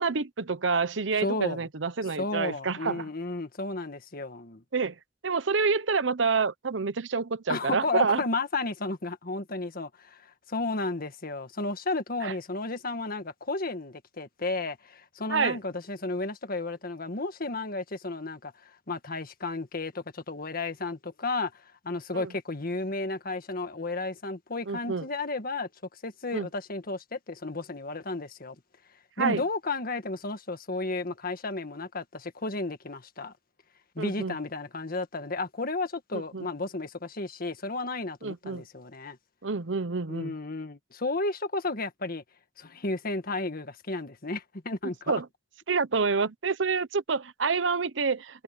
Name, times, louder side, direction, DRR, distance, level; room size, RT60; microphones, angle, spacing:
voice 1, 0.0-3.1 4.7-5.0 5.2-8.2 12.2-12.3 15.3-15.6 22.1-22.3 24.7-25.1 26.3-26.5 29.2-29.4 34.0-34.3 36.1-36.5 38.2-38.6 39.4-40.3 45.1-45.3 45.7-48.4, right 4 dB, 80° right, 0.9 m, -28 dB
voice 2, 1.2-1.7 2.2-4.6 7.5-28.5 29.2-33.3 33.9-39.2 40.1-42.2 42.6-45.1, left 3 dB, 50° left, 1.7 m, -33 dB
head